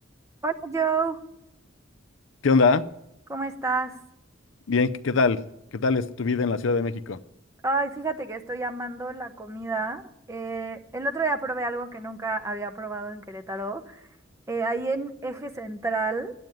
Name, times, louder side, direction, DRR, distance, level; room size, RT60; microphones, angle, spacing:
voice 1, 0.4-1.2 3.3-4.0 7.6-10.0 10.3-14.0 14.5-16.3, right 3 dB, 15° right, 6 dB, 0.8 m, -29 dB
voice 2, 2.4-2.8 4.7-5.4 5.7-7.2, left 4 dB, 75° left, 13 dB, 0.6 m, -22 dB
10.5 x 8.5 x 9.1 m, 0.85 s
head